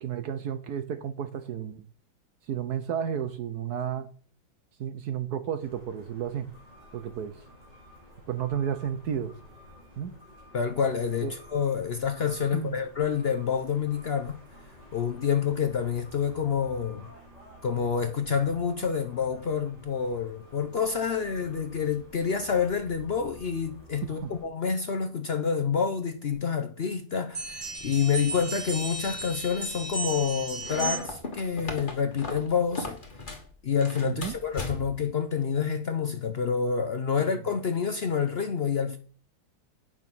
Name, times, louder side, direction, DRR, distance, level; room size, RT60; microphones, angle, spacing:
voice 1, 0.0-1.8 2.5-4.1 4.8-6.5 6.9-7.4 8.3-9.4 10.0-10.1 11.2-11.3 12.5-12.8 24.0-24.3 34.0-34.4, right 8 dB, 65° right, 1.1 m, -32 dB
sound 1, 5.6-24.4, equal, 20° right, 5.0 m, -51 dB
voice 2, 10.5-14.3 14.9-17.0 17.6-33.0 33.6-39.0, left 6 dB, 85° left, 0.5 m, -28 dB
sound 2, 27.3-31.3, right 2 dB, 45° right, 4.7 m, -35 dB
sound 3, 30.6-33.5 33.8-35.1, left 2 dB, 25° left, 1.7 m, -37 dB
9.1 x 6.1 x 6.0 m
omnidirectional pair, 2.1 m